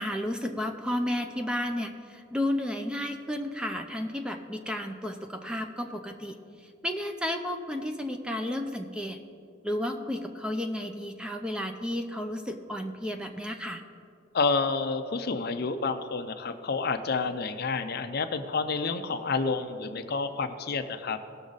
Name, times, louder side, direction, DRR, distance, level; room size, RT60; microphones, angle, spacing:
voice 1, 0.0-6.4 6.8-9.2 9.6-13.8, left 1 dB, 5° right, 5 dB, 0.5 m, -32 dB
voice 2, 14.3-21.2, left 4 dB, 50° left, 9 dB, 0.5 m, -29 dB
18.0 x 6.2 x 3.9 m, 2.4 s
head